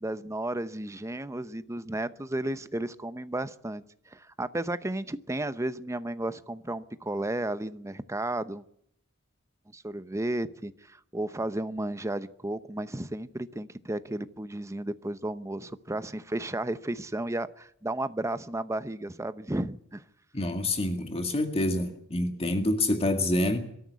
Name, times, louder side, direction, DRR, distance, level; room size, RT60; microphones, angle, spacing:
voice 1, 0.0-3.8 4.1-8.6 9.7-20.0, right 1 dB, 15° right, 13 dB, 0.8 m, -33 dB
voice 2, 20.3-23.6, left 1 dB, 30° left, 6 dB, 2.0 m, -27 dB
23.5 x 13.5 x 8.3 m, 0.71 s
head